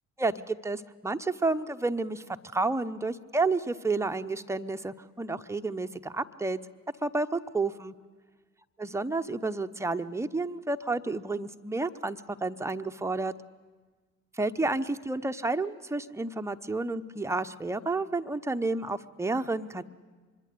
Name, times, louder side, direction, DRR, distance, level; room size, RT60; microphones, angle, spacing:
voice 1, 0.2-2.2 2.5-6.6 7.0-7.9 8.8-13.3 14.4-19.8, right 3 dB, 5° right, 9 dB, 0.8 m, -30 dB
25.5 x 22.5 x 6.7 m, 1.4 s
figure-of-eight pair, 45°, 40 cm